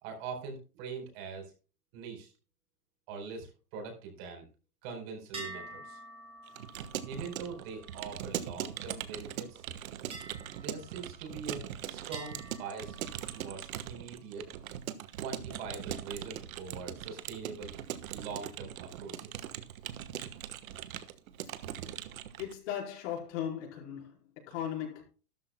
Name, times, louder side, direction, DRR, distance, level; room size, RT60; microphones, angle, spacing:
voice 1, 0.0-1.5 1.9-2.3 3.1-4.5 4.8-6.0 7.0-9.6 10.5-13.0 13.3-14.5 15.2-17.8 18.1-19.4, right 5 dB, 40° right, 4.4 m, -43 dB
sound 1, 5.3-9.0 10.1-11.7 12.1-13.8, right 2 dB, 10° right, 2.7 m, -49 dB
Keyboard (musical) / Computer keyboard, 6.5-22.6, right 11 dB, 65° right, 1.4 m, -41 dB
voice 2, 22.4-25.0, left 10 dB, 50° left, 4.9 m, -37 dB
13.5 x 13.0 x 2.2 m
supercardioid pair, 165°, 45 cm